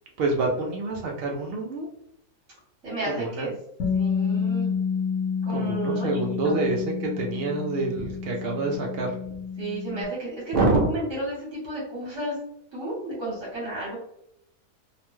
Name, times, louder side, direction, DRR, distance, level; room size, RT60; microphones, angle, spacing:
voice 1, 0.2-1.9 3.1-3.5 5.5-9.1 10.5-10.9, right 2 dB, 75° right, 0 dB, 0.5 m, -26 dB
voice 2, 2.8-3.5 3.9-4.7 5.4-6.1 6.4-6.6 9.6-12.3 12.7-14.0, right 1 dB, 55° right, -6 dB, 1.3 m, -32 dB
Bass guitar, 3.8-10.0, left 6 dB, 65° left, 1.2 m, -29 dB
2.9 x 2.2 x 3.0 m, 0.76 s
omnidirectional pair, 1.6 m